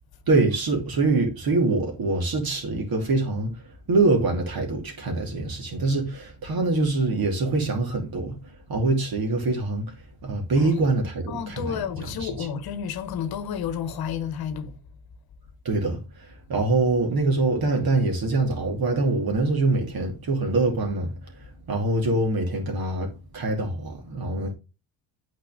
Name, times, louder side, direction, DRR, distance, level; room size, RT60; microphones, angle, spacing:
voice 1, 0.3-3.5 3.9-8.4 8.7-9.9 10.2-11.8 12.2-12.3 15.6-16.0 16.5-21.2 21.7-24.5, right 2 dB, 55° right, 2.8 m, -24 dB
voice 2, 11.2-14.8, left 8 dB, 55° left, 1.1 m, -31 dB
8.4 x 4.5 x 3.6 m
supercardioid pair, 90°, 44 cm